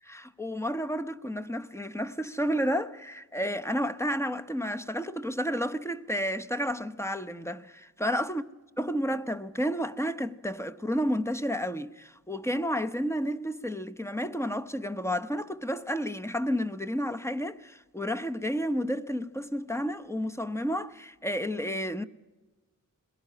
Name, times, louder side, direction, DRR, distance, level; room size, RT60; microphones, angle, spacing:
voice 1, 0.0-8.4 8.8-22.0, equal, 10° left, 0.8 m, -31 dB
21.5 x 17.0 x 8.6 m
wide cardioid pair, 95°, 32 cm